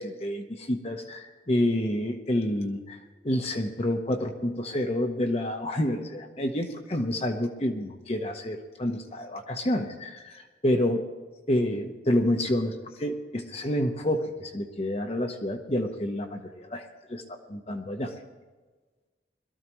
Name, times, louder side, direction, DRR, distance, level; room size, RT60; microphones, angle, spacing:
voice 1, 0.0-3.0 3.2-11.0 11.5-18.1, left 1 dB, 35° left, 4 dB, 0.9 m, -29 dB
21.5 x 13.5 x 3.1 m, 1.3 s
head